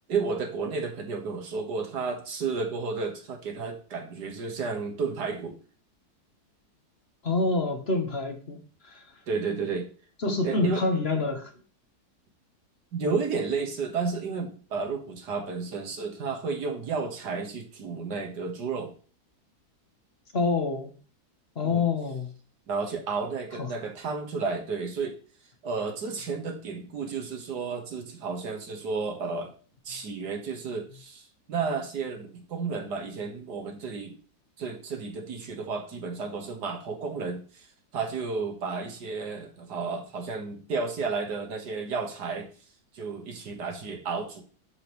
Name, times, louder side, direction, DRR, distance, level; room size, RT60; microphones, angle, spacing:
voice 1, 0.1-5.6 9.3-9.9 10.4-10.8 12.9-18.9 21.6-21.8 22.7-25.1 25.6-29.5 29.9-34.2 34.6-37.7 37.9-42.5 42.9-44.4, right 4 dB, 85° right, 2.0 m, -32 dB
voice 2, 7.2-8.6 8.8-9.0 10.2-11.5 20.3-20.9 21.6-22.3 23.6-23.7, left 3 dB, 45° left, 1.3 m, -27 dB
12.5 x 5.2 x 3.1 m
omnidirectional pair, 1.7 m